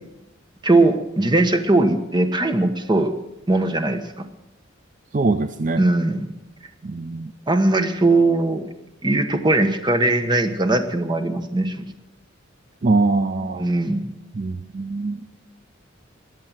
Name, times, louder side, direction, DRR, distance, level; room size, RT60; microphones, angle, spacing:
voice 1, 0.6-3.1 3.5-4.2 5.8-6.3 7.5-8.6 9.0-11.9 13.6-14.1, right 2 dB, 25° right, 7 dB, 1.2 m, -20 dB
voice 2, 5.1-5.8 6.8-7.3 12.8-13.7 14.3-15.3, right 3 dB, 40° right, 9 dB, 0.5 m, -23 dB
21.5 x 7.6 x 7.4 m, 0.97 s
head